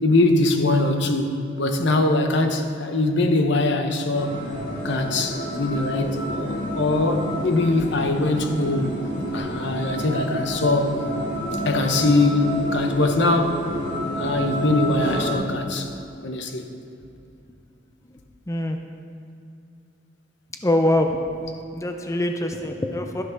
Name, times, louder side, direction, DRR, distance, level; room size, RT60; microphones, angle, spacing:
voice 1, 0.0-4.4 4.8-9.0 9.3-11.0 11.6-13.6 14.2-15.9 16.2-16.7, left 2 dB, 65° left, 5 dB, 1.0 m, -22 dB
sound 1, 4.1-15.3, equal, 85° left, 3.0 m, -29 dB
voice 2, 18.5-18.8 20.6-21.2 21.7-23.2, left 1 dB, 15° left, 4 dB, 0.6 m, -23 dB
13.0 x 11.5 x 4.0 m, 2.6 s
head